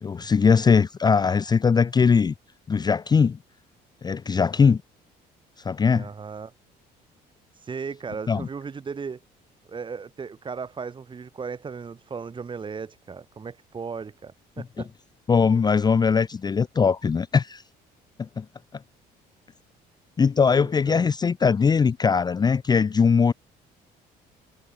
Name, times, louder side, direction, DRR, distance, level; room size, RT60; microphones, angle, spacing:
voice 1, 0.0-2.3 2.7-3.4 4.0-4.8 5.6-6.1 8.3-8.5 15.3-17.6 18.2-18.4 20.2-23.3, left 5 dB, 25° left, 0.6 m, -20 dB
voice 2, 5.9-6.5 7.6-9.2 9.7-14.9 20.5-21.1, right 5 dB, 30° right, 1.8 m, -36 dB
cardioid pair, 110°, 17 cm